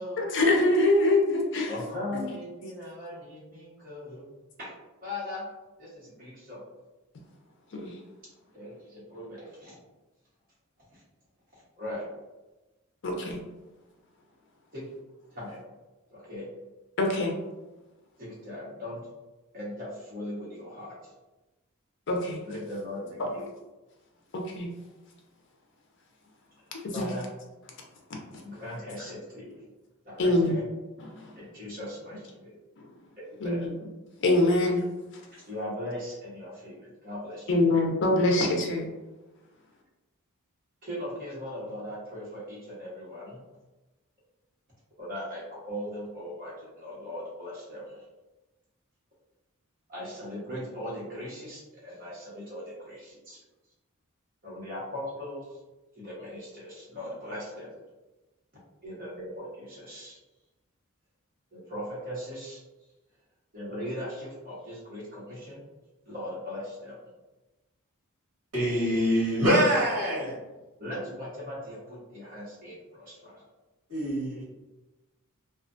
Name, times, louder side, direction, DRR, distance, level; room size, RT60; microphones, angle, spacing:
voice 1, 0.2-1.7 2.1-2.3 7.8-7.9 13.0-13.4 17.0-17.3 22.1-22.4 23.2-23.3 24.3-24.7 26.7-27.1 30.2-30.6 31.0-31.3 32.8-32.9 33.4-33.7 34.2-34.8 37.5-38.9, left 2 dB, 55° left, 1 dB, 0.5 m, -24 dB
voice 2, 1.7-4.3 4.6-4.7 5.0-5.5 5.8-6.6 8.5-9.8 10.9-11.0 11.5-12.1 14.7-14.9 15.3-15.6 16.1-16.5 18.2-19.0 19.5-21.1 22.4-23.5 26.9-27.3 28.4-29.6 30.0-30.6 31.4-32.6 33.4-33.7 35.3-37.5 40.8-43.4 45.0-48.0 49.9-53.4 54.4-55.6 55.9-57.7 58.8-60.2 61.5-62.6 63.5-65.6 66.0-67.0 70.8-73.5, left 1 dB, 40° right, -8 dB, 1.1 m, -39 dB
voice 3, 68.5-70.3 73.9-74.4, equal, 70° right, -10 dB, 1.2 m, -24 dB
2.4 x 2.3 x 2.5 m, 1.1 s
head